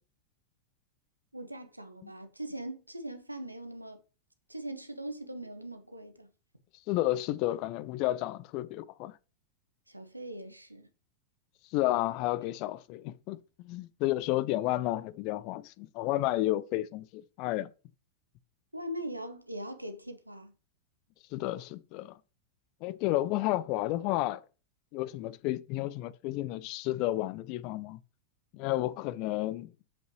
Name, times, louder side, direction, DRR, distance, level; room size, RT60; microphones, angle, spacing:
voice 1, 1.3-4.0 4.5-6.3 9.9-10.9 18.7-20.5, right 1 dB, 85° right, 0.8 m, -41 dB
voice 2, 6.9-9.2 11.7-17.7 21.3-22.2 22.8-24.4 24.9-28.0 28.5-29.9, left 16 dB, 45° left, 0.4 m, -31 dB
7.3 x 5.3 x 3.1 m
figure-of-eight pair, 90°, 0 cm